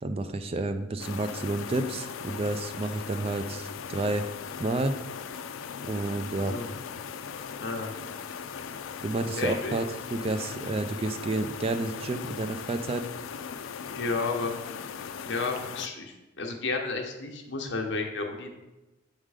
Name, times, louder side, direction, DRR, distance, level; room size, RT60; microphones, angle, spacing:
voice 1, 0.0-4.3 4.6-5.0 5.8-6.6 9.0-9.8 10.1-13.1, right 2 dB, 30° right, 8 dB, 0.3 m, -30 dB
sound 1, 1.0-15.9, left 7 dB, 85° left, 0.4 m, -39 dB
voice 2, 7.6-7.9 9.4-9.8 13.9-14.5 15.2-18.5, left 3 dB, 60° left, 2 dB, 1.0 m, -32 dB
7.4 x 3.7 x 4.9 m, 1.0 s
head